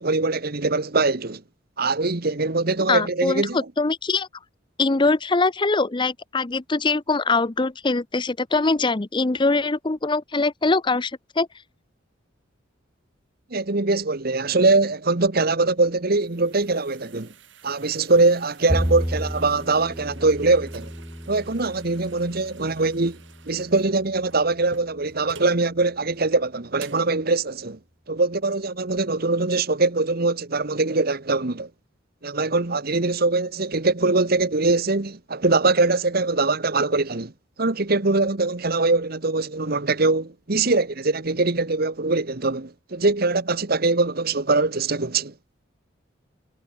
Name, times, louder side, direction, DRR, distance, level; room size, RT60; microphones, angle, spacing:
voice 1, 0.0-1.4 1.8-3.6 13.5-17.3 17.6-20.9 21.3-23.2 23.5-27.8 28.1-31.7 32.2-37.3 37.6-45.3, right 3 dB, 50° right, 1.3 m, -22 dB
voice 2, 2.9-4.3 4.8-11.5, left 3 dB, 25° left, 0.6 m, -22 dB
sound 1, 15.8-25.6 26.1-26.2 26.8-27.2, right 5 dB, 70° right, 6.6 m, -49 dB
Bowed string instrument, 18.7-25.0, equal, 5° right, 1.2 m, -32 dB
head